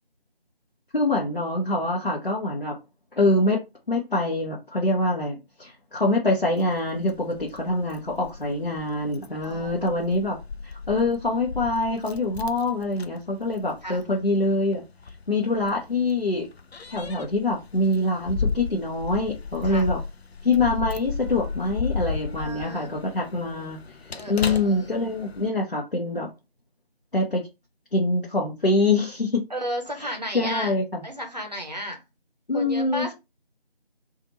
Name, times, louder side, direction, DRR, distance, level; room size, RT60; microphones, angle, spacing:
voice 1, 0.9-2.8 3.1-10.4 10.6-14.8 15.3-16.5 16.9-20.0 20.4-23.8 24.3-26.3 27.1-27.4 27.9-29.4 30.0-31.0 32.5-33.1, left 2 dB, 60° left, 0.8 m, -25 dB
Keys jangling, 6.4-25.5, left 5 dB, 85° left, 0.5 m, -35 dB
voice 2, 9.4-9.9 13.8-14.0 19.6-19.9 22.4-23.3 24.1-24.8 29.5-30.7 31.0-32.0 32.5-33.1, equal, 45° right, 0.8 m, -34 dB
2.8 x 2.5 x 2.8 m
figure-of-eight pair, 175°, 31 cm